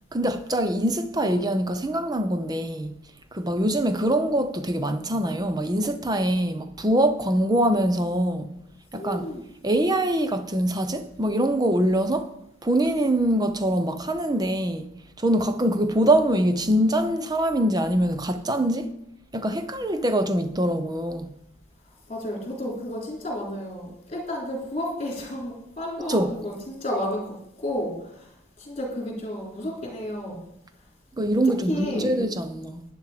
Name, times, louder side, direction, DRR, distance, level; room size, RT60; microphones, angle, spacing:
voice 1, 0.1-3.0 3.3-8.5 8.9-9.3 9.6-12.3 12.6-14.9 15.2-18.9 19.3-21.3 26.1-26.3 31.2-32.8, right 1 dB, 20° right, 0.7 m, -24 dB
voice 2, 8.9-9.4 22.1-28.3 28.6-30.4 31.4-32.2, left 1 dB, 30° left, 3.6 m, -32 dB
11.5 x 9.6 x 5.0 m
head